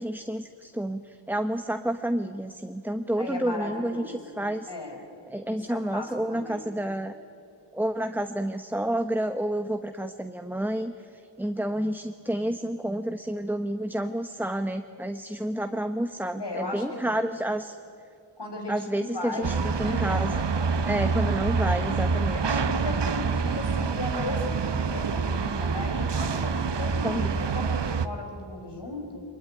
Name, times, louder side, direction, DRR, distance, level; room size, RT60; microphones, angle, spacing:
voice 1, 0.0-4.7 5.3-7.2 7.7-17.8 18.7-20.3 20.9-22.6 27.0-27.4, right 1 dB, 5° right, 8 dB, 0.9 m, -30 dB
voice 2, 3.2-5.0 5.5-6.6 16.4-17.2 18.4-19.5 19.8-20.5 22.3-29.2, left 2 dB, 55° left, 2 dB, 5.2 m, -36 dB
sound 1, 19.4-28.1, right 5 dB, 60° right, 1.1 m, -27 dB
23.0 x 21.5 x 9.8 m, 2.5 s
cardioid pair, 50°, 48 cm